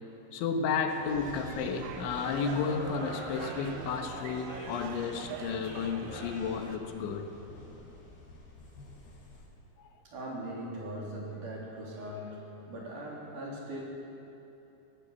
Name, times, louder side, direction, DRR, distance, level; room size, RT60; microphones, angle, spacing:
voice 1, 0.3-7.3 9.8-9.9, left 5 dB, 85° left, 4 dB, 3.9 m, -32 dB
sound 1, 0.9-6.8, right 8 dB, 70° right, 2.7 m, -44 dB
sound 2, 1.1-9.5, left 2 dB, 60° left, 6.3 m, -46 dB
voice 2, 10.0-13.8, right 1 dB, 45° right, -4 dB, 4.8 m, -40 dB
19.5 x 17.5 x 8.3 m, 2.9 s
omnidirectional pair, 5.3 m